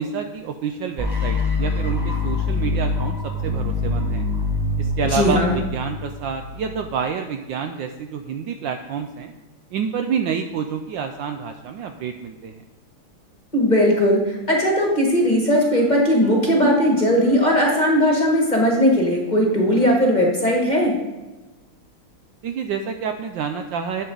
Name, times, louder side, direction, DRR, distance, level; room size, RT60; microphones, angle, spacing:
voice 1, 0.0-3.2 3.4-4.2 4.8-9.3 9.7-12.6 22.4-24.0, right 7 dB, 75° right, 6 dB, 1.1 m, -28 dB
sound 1, 1.0-6.9, left 3 dB, 30° right, 0.4 m, -24 dB
voice 2, 5.1-5.6 13.5-20.9, equal, 25° left, -1 dB, 1.2 m, -18 dB
11.0 x 6.7 x 3.9 m, 1.1 s
omnidirectional pair, 2.4 m